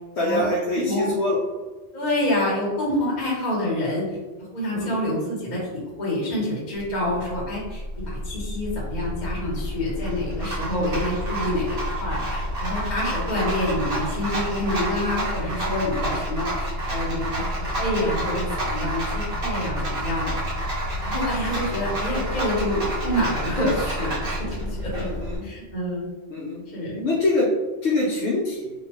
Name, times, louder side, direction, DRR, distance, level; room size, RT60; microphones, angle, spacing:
voice 1, 0.1-1.4 4.7-5.0 7.0-7.1 10.7-10.8 24.9-25.5 26.3-26.6 27.0-27.5 27.8-28.7, left 2 dB, 75° left, -3 dB, 0.9 m, -24 dB
voice 2, 1.9-20.3 21.0-25.1 25.4-26.1 26.7-27.0, left 1 dB, 40° left, -5 dB, 1.1 m, -27 dB
Rattle, 6.8-25.4, equal, 60° right, 1.3 m, -29 dB
2.9 x 2.6 x 3.0 m, 1.2 s
omnidirectional pair, 1.1 m